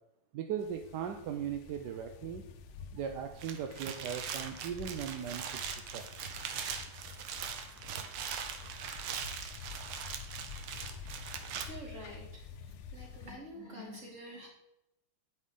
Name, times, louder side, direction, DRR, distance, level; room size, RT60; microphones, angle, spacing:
voice 1, 0.3-2.4 2.9-5.6 5.9-6.0, right 8 dB, 70° right, 6 dB, 1.1 m, -38 dB
sound 1, 0.6-13.4, left 6 dB, 90° left, 1.5 m, -49 dB
sound 2, 3.3-11.6, right 7 dB, 90° right, 1.8 m, -41 dB
voice 2, 11.6-14.5, equal, 35° right, -3 dB, 3.2 m, -47 dB
9.5 x 8.7 x 3.7 m, 0.86 s
omnidirectional pair, 2.3 m